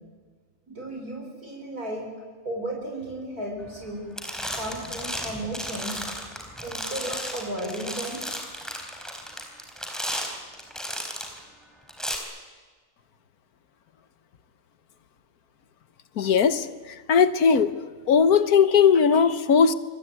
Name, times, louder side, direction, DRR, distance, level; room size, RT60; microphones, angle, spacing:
voice 1, 0.7-2.1 2.4-4.0 4.5-6.1 6.6-8.2, right 1 dB, 90° right, 0 dB, 5.7 m, -34 dB
sound 1, 3.7-3.9 4.2-11.4 11.9-12.1, equal, ahead, 4.4 m, -34 dB
voice 2, 16.2-17.7 18.1-19.7, left 6 dB, 90° left, 13 dB, 1.6 m, -19 dB
28.0 x 23.5 x 9.2 m, 1.4 s
omnidirectional pair, 1.5 m